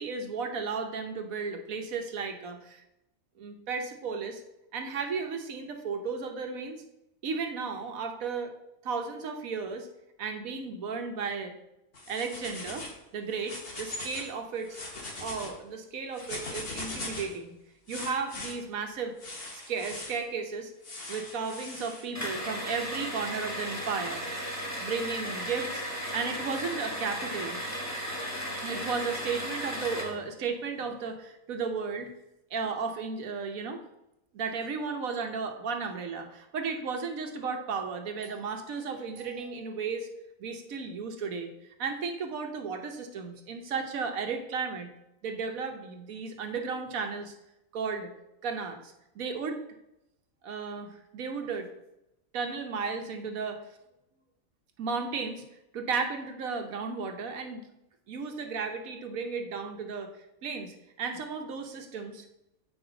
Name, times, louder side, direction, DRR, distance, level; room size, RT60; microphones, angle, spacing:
voice 1, 0.0-2.8 3.4-4.4 4.7-6.8 7.2-8.5 8.8-9.9 10.2-11.5 12.1-12.8 13.1-14.8 15.2-17.5 17.9-19.1 19.5-20.7 21.1-24.2 24.8-25.8 26.1-27.6 28.6-32.1 32.5-33.8 34.3-40.1 40.4-41.5 41.8-44.9 45.2-47.3 47.7-48.1 48.4-49.6 50.4-51.7 52.3-53.6 54.8-55.4 55.7-57.7 58.1-60.1 60.4-62.2, right 5 dB, 90° right, 4 dB, 1.4 m, -34 dB
sound 1, 11.9-13.0 13.3-14.3 14.6-15.5 16.1-17.4 17.9-18.5 19.2-20.2 20.8-22.0, left 2 dB, 45° left, 1.5 m, -40 dB
sound 2, 22.1-30.2, equal, 15° left, 1.3 m, -35 dB
8.1 x 5.4 x 3.9 m, 0.88 s
omnidirectional pair, 1.4 m